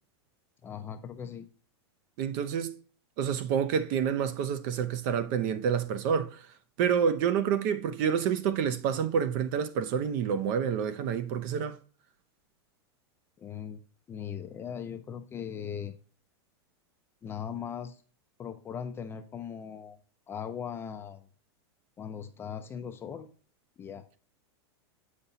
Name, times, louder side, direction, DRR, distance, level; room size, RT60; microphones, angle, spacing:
voice 1, 0.6-1.5 13.4-13.8 14.1-15.9 17.2-18.0 18.4-20.0 20.3-21.3 22.0-23.3 23.8-24.1, left 8 dB, 15° left, 0.4 m, -39 dB
voice 2, 2.2-2.7 3.2-6.5 6.8-11.8, right 7 dB, 45° right, 0.7 m, -28 dB
8.0 x 5.3 x 2.7 m
supercardioid pair, 155°, 14 cm